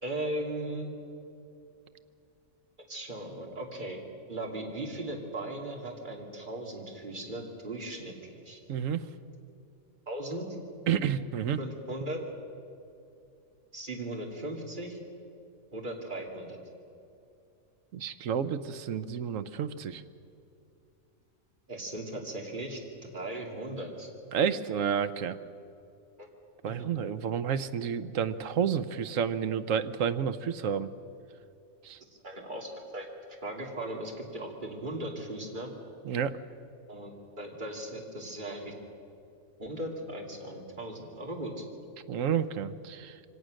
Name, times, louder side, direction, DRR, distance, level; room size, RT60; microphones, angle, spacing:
voice 1, 0.0-0.9 2.9-8.1 8.4-8.6 10.1-10.5 11.6-12.2 13.7-15.0 15.7-16.6 21.7-24.1 26.2-26.3 26.6-26.9 32.2-33.1 33.4-35.7 36.9-38.7 39.6-41.6, right 1 dB, 35° right, 0 dB, 2.7 m, -38 dB
voice 2, 8.7-9.0 10.9-11.6 17.9-20.0 24.3-25.4 26.6-30.9 31.8-32.0 36.0-36.4 42.1-43.2, right 8 dB, 70° right, 12 dB, 1.1 m, -30 dB
24.0 x 18.0 x 6.4 m, 2.6 s
omnidirectional pair, 1.4 m